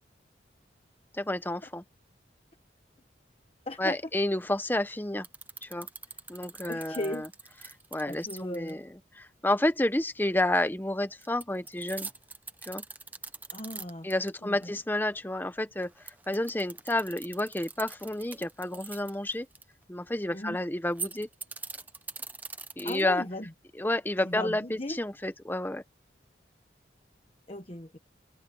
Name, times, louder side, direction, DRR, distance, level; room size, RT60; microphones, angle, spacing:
voice 1, 1.1-1.8 3.8-5.3 5.6-5.9 6.3-7.3 7.9-8.9 9.1-12.1 12.6-12.8 14.0-19.5 19.9-21.3 22.8-23.2 23.8-25.8, left 1 dB, 10° left, 0.9 m, -30 dB
voice 2, 3.7-4.0 6.7-7.3 8.1-8.8 13.5-14.1 14.4-14.6 20.3-20.6 22.8-23.5 24.2-25.0 27.5-28.0, left 1 dB, 35° left, 1.2 m, -36 dB
sound 1, 5.2-8.7 11.2-14.3 14.6-14.7 15.8-19.6 20.8-23.2, right 4 dB, 10° right, 1.0 m, -42 dB
head